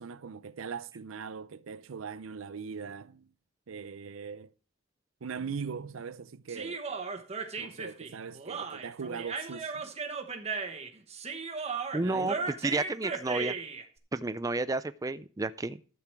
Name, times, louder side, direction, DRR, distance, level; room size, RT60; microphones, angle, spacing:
voice 1, 0.0-3.3 3.7-4.5 5.2-6.8 7.6-9.9 12.0-12.4, right 6 dB, 75° right, 0.5 m, -40 dB
Human voice, 6.5-13.8, right 4 dB, 30° right, 1.1 m, -36 dB
voice 2, 11.9-13.6 14.1-15.8, right 2 dB, 15° right, 0.4 m, -31 dB
12.0 x 7.9 x 4.5 m
head